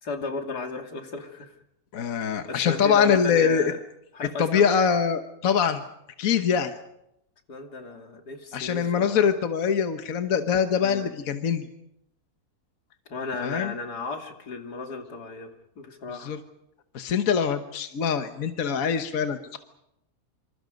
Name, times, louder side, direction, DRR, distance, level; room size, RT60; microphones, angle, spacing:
voice 1, 0.0-1.5 2.1-3.8 4.1-4.8 7.5-9.2 10.8-11.1 13.1-15.5 15.8-16.4, left 3 dB, 85° left, 4 dB, 3.2 m, -35 dB
voice 2, 1.9-3.7 4.4-5.8 6.2-6.7 8.5-11.7 13.4-13.7 16.2-16.4 16.9-19.6, left 7 dB, 60° left, 7 dB, 1.6 m, -23 dB
26.5 x 26.5 x 5.3 m, 0.80 s
omnidirectional pair, 1.7 m